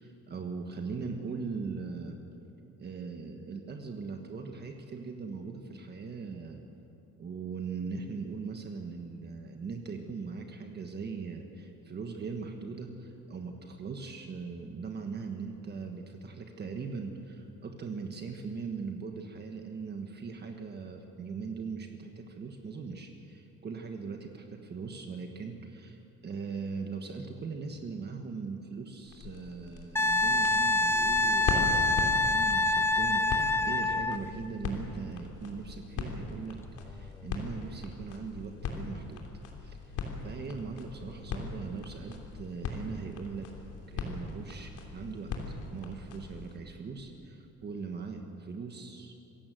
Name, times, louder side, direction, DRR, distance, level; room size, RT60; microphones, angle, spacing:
voice 1, 0.0-2.2 2.8-6.6 7.2-36.6 36.8-39.2 39.6-43.5 43.9-45.3 45.7-49.1, right 5 dB, 35° right, 4 dB, 1.5 m, -40 dB
sound 1, 29.0-46.6, left 4 dB, 75° left, 3.3 m, -39 dB
Wind instrument woodwind instrument, 30.0-34.2 36.9-37.0, left 2 dB, 10° left, 0.4 m, -26 dB
26.0 x 16.0 x 7.7 m, 2.9 s
cardioid pair, 155°, 31 cm